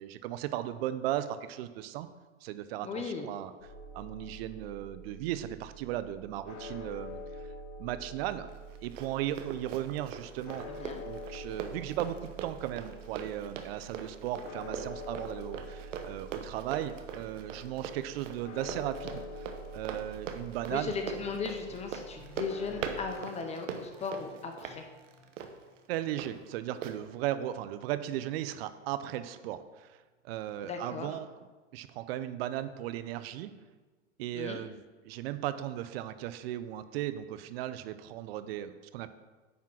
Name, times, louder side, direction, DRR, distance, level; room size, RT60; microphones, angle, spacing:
voice 1, 0.0-2.1 2.4-3.5 3.9-7.2 7.8-8.5 8.8-10.7 11.0-19.5 19.7-20.9 25.9-30.0 30.2-31.3 31.7-33.5 34.2-34.8 35.0-39.1, right 12 dB, 55° right, 12 dB, 0.6 m, -36 dB
voice 2, 2.8-3.3 10.7-11.0 20.7-24.9 30.6-31.2 34.3-34.6, left 5 dB, 20° left, 5 dB, 0.6 m, -37 dB
sound 1, 3.6-23.0, equal, 65° left, 2.2 m, -46 dB
Run, 8.5-26.3 26.8-27.0, right 6 dB, 75° right, 1.0 m, -42 dB
sound 2, 20.7-25.9, left 2 dB, 5° right, 1.2 m, -58 dB
9.5 x 3.6 x 5.9 m, 1.3 s
hypercardioid pair, 120°, 37 cm